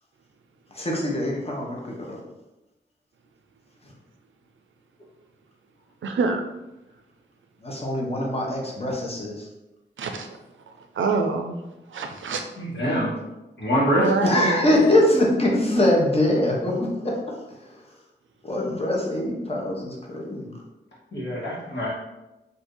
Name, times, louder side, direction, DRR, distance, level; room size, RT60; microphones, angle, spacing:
voice 1, 0.7-2.2 7.6-9.5 14.2-17.3 18.4-20.5, left 1 dB, 30° left, -2 dB, 0.9 m, -23 dB
voice 2, 6.0-6.4 10.0-10.3 10.9-11.6 11.9-12.4 14.0-14.7, right 4 dB, 90° right, 5 dB, 0.4 m, -25 dB
voice 3, 12.6-13.1 13.6-14.1 21.1-21.9, equal, 65° left, -6 dB, 1.5 m, -24 dB
2.6 x 2.6 x 3.7 m, 0.98 s
cardioid pair, 45°, 19 cm